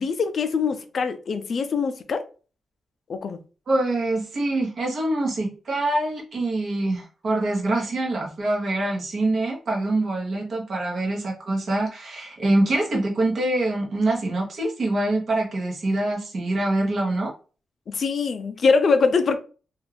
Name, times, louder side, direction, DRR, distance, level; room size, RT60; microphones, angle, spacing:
voice 1, 0.0-2.2 3.1-3.4 17.9-19.4, left 4 dB, 50° left, 0.4 m, -23 dB
voice 2, 3.7-17.3, right 2 dB, 45° right, 1.0 m, -25 dB
2.6 x 2.3 x 3.3 m
wide cardioid pair, 150°, 0 cm